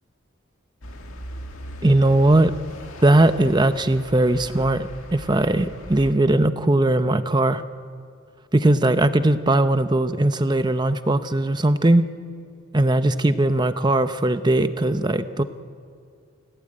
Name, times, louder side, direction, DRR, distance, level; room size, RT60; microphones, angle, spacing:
sound 1, 0.8-6.1, left 1 dB, 75° left, 2.0 m, -39 dB
voice 1, 1.8-2.5 3.0-7.6 8.5-12.0 12.7-15.4, right 1 dB, 20° right, 11 dB, 0.7 m, -19 dB
29.5 x 16.0 x 8.8 m, 2.4 s
head